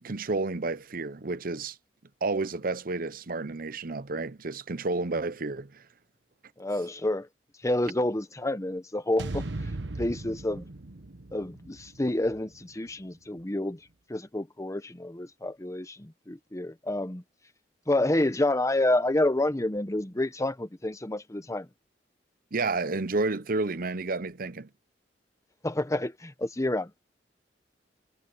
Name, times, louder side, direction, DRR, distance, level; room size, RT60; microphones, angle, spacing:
voice 1, 0.0-1.8 2.2-5.8 22.5-24.7, right 3 dB, 55° right, 0.8 m, -30 dB
voice 2, 6.6-7.3 7.6-9.7 10.0-10.6 11.3-13.8 14.1-17.2 17.9-21.7 25.6-26.9, left 1 dB, 20° left, 0.9 m, -29 dB
sound 1, 9.2-13.4, right 2 dB, 80° right, 1.1 m, -39 dB
head